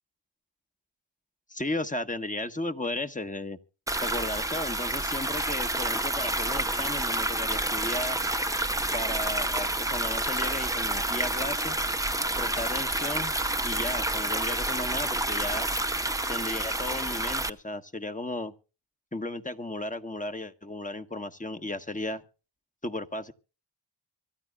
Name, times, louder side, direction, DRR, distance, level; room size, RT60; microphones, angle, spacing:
voice 1, 1.5-3.6 4.0-8.2 8.9-11.8 12.4-13.3 13.6-15.7 16.3-18.5 19.1-22.2 22.8-23.3, left 2 dB, 15° left, 1.3 m, -35 dB
sound 1, 3.9-17.5, right 1 dB, 5° right, 0.8 m, -29 dB
25.5 x 13.0 x 2.4 m
cardioid pair, 55°, 47 cm